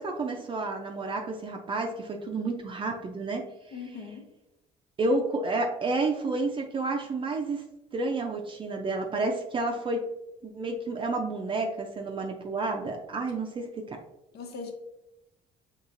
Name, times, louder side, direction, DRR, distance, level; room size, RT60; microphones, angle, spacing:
voice 1, 0.0-4.0 5.0-7.6 7.9-10.1 10.4-14.0, right 3 dB, 30° right, 2 dB, 0.5 m, -30 dB
voice 2, 3.7-4.3 14.3-14.7, left 5 dB, 70° left, 3 dB, 0.9 m, -39 dB
5.6 x 2.9 x 2.5 m, 0.90 s
cardioid pair, 110°, 17 cm